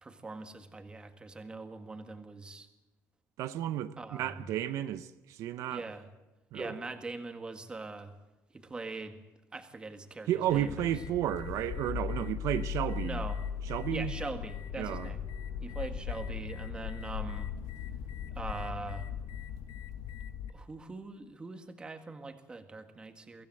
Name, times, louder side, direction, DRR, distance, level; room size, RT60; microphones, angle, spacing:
voice 1, 0.0-2.7 4.0-4.4 5.7-6.1 6.5-8.1 8.5-9.2 9.5-10.9 13.0-13.4 13.9-15.3 15.6-17.5 18.3-19.1 20.5-23.5, right 3 dB, 15° right, 1.7 m, -42 dB
voice 2, 3.4-5.8 6.5-6.7 10.3-13.2 13.7-14.1 14.8-15.1, right 11 dB, 70° right, 0.8 m, -32 dB
sound 1, 10.5-20.5, left 8 dB, 85° left, 1.5 m, -38 dB
23.5 x 16.0 x 7.8 m
cardioid pair, 160°, 6 cm